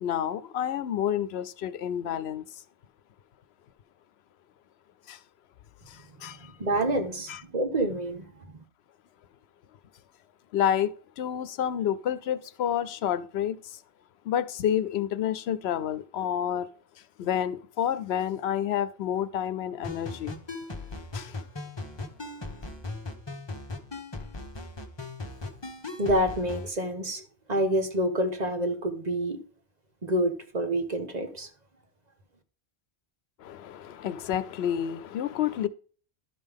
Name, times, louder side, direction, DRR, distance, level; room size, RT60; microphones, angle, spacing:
voice 1, 0.0-2.6 5.1-5.2 5.9-6.6 7.3-7.4 10.5-13.8 14.2-16.7 17.2-20.3 21.1-21.4 33.4-35.7, left 10 dB, 85° left, 0.8 m, -29 dB
voice 2, 6.6-8.2 26.0-29.4 30.0-31.5, right 1 dB, 45° right, 1.3 m, -27 dB
sound 1, 19.8-26.7, left 2 dB, 25° left, 1.1 m, -38 dB
12.0 x 5.4 x 3.5 m
omnidirectional pair, 1.1 m